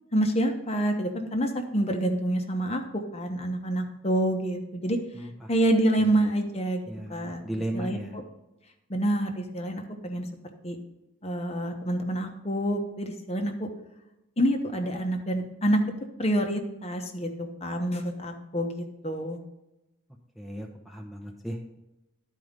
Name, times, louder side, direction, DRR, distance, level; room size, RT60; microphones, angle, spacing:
voice 1, 0.1-5.0 5.5-6.8 7.1-7.4 7.7-8.0 8.9-10.3 10.6-10.8 11.2-13.7 14.4-15.8 16.2-19.4, right 1 dB, 30° left, 5 dB, 1.0 m, -27 dB
voice 2, 5.1-5.5 6.0-6.2 6.9-8.2 20.4-21.8, equal, ahead, 0 dB, 0.8 m, -36 dB
11.0 x 4.7 x 5.2 m, 0.96 s
head